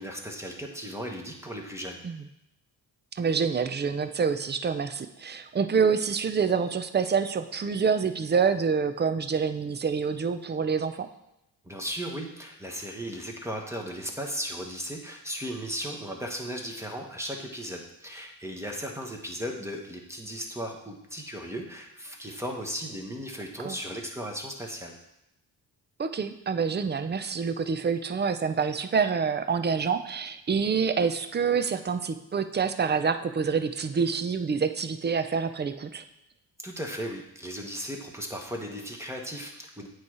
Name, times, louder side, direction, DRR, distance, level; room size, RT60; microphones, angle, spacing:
voice 1, 0.0-2.0 11.6-24.9 36.6-39.9, equal, 5° right, 1 dB, 1.4 m, -36 dB
voice 2, 3.1-11.1 23.6-23.8 26.0-36.0, right 5 dB, 25° right, 10 dB, 0.5 m, -27 dB
8.3 x 3.2 x 4.8 m, 0.88 s
supercardioid pair, 55°, 43 cm